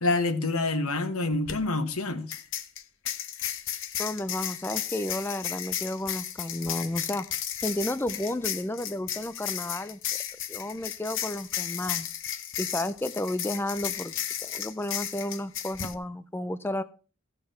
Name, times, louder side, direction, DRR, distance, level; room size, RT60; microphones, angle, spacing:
voice 1, 0.0-2.4, left 2 dB, 75° left, 1.7 m, -27 dB
sound 1, 1.3-1.5 2.3-15.9, left 10 dB, 60° left, 1.3 m, -34 dB
voice 2, 4.0-10.0 10.5-12.1 12.6-14.1 14.4-16.8, left 1 dB, 10° left, 0.5 m, -32 dB
16.0 x 6.6 x 5.6 m
head